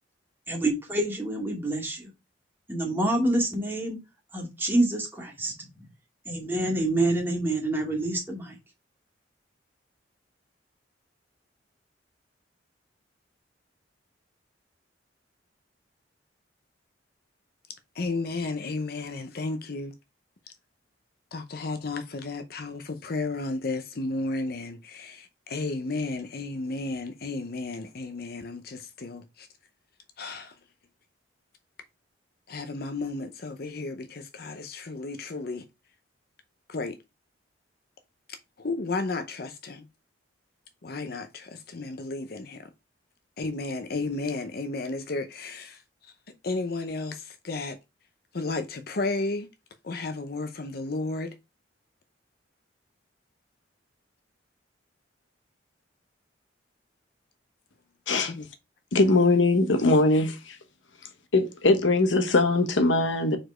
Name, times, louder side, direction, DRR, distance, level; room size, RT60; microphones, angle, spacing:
voice 1, 0.5-2.1 2.7-4.0 4.3-5.7 6.3-8.6, right 1 dB, 10° right, 2.2 m, -27 dB
voice 2, 18.0-19.9 21.3-29.5 30.2-30.5 32.5-35.6 36.7-37.0 38.6-39.9 40.8-42.7 43.4-45.8 46.4-47.8 48.3-49.5 49.8-51.3 58.3-58.5, left 3 dB, 55° left, 0.7 m, -33 dB
voice 3, 58.9-60.6 61.3-63.4, left 2 dB, 90° left, 1.0 m, -21 dB
4.8 x 4.5 x 4.4 m
head